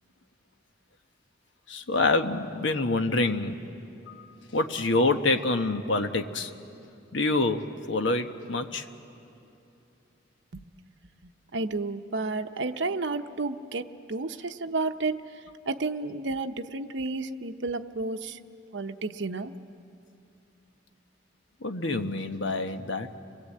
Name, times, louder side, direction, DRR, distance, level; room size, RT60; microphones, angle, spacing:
voice 1, 1.7-3.6 4.1-4.3 4.5-6.5 7.1-8.9 21.6-23.1, left 2 dB, 80° left, 6 dB, 1.2 m, -26 dB
voice 2, 11.5-15.3 15.7-18.4 18.7-19.5, right 3 dB, 70° right, 6 dB, 0.8 m, -31 dB
30.0 x 22.0 x 8.6 m, 2.7 s
head